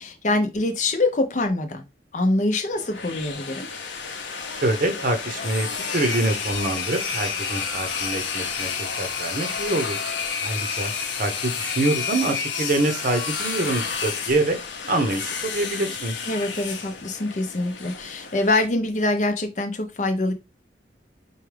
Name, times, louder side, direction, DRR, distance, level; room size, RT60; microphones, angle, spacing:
voice 1, 0.0-1.8 2.1-3.7 16.3-20.3, left 2 dB, 40° left, 0.6 m, -24 dB
sound 1, 2.7-18.7, left 6 dB, 85° left, 0.8 m, -30 dB
voice 2, 4.5-10.0 10.4-10.9 11.2-14.6 14.8-16.1, right 2 dB, 50° right, 0.7 m, -25 dB
4.7 x 2.3 x 3.2 m
head